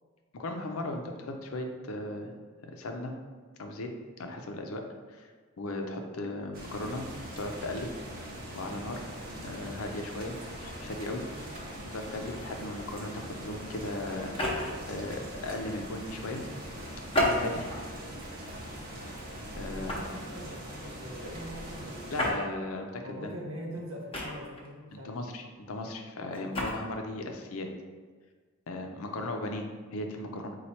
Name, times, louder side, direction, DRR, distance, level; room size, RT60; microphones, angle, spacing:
voice 1, 0.3-2.3 2.8-3.1 3.6-3.9 4.2-4.8 5.1-5.3 5.6-7.0 7.4-7.9 8.5-9.1 9.4-11.6 11.9-16.4 17.2-17.7 19.6-19.9 22.1-23.4 24.9-27.7 28.7-30.6, left 2 dB, 85° left, 4 dB, 0.5 m, -37 dB
sound 1, 6.5-22.3, equal, 45° right, 0.8 m, -42 dB
sound 2, 14.2-14.9 17.1-17.9 18.5-18.7 19.9-20.2 22.2-22.4 24.1-24.7 26.3-26.7, equal, 25° left, 0.7 m, -30 dB
voice 2, 19.6-22.3 23.0-25.1, equal, 80° right, -2 dB, 1.0 m, -42 dB
4.3 x 2.3 x 4.2 m, 1.5 s
head